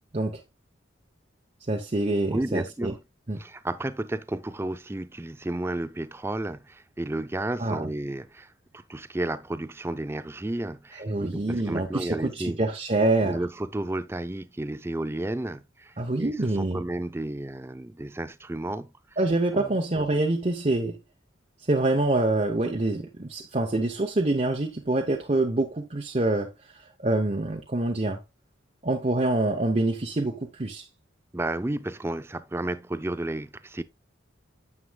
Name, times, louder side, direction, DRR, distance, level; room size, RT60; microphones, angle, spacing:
voice 1, 1.7-2.9 3.3-3.4 7.6-7.9 10.9-13.4 16.0-16.8 19.2-21.0 21.6-28.2 28.8-30.9, right 2 dB, 35° right, 0.7 m, -26 dB
voice 2, 2.3-3.0 3.4-12.6 13.2-18.9 19.5-19.7 31.3-33.8, right 1 dB, 10° right, 0.4 m, -32 dB
9.5 x 7.6 x 2.3 m
head